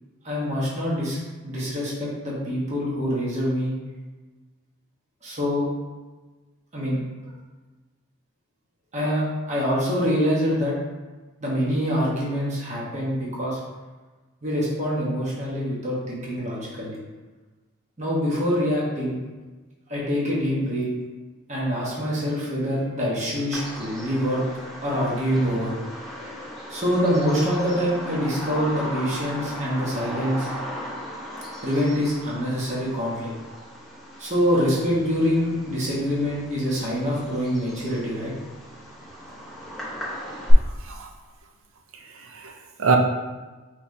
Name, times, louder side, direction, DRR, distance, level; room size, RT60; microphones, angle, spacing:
voice 1, 0.2-3.7 5.2-5.6 6.7-7.0 8.9-10.7 11.4-13.6 14.4-17.0 18.0-19.2 19.9-20.9 21.5-24.4 24.8-25.7 26.7-30.5 31.6-33.3 34.2-38.3, equal, 35° right, -6 dB, 1.1 m, -25 dB
Bird vocalization bird call bird song, 23.5-40.5, equal, ahead, 0.9 m, -36 dB
voice 2, 42.1-43.0, right 4 dB, 70° right, 3 dB, 0.6 m, -25 dB
5.6 x 3.3 x 2.7 m, 1.3 s
head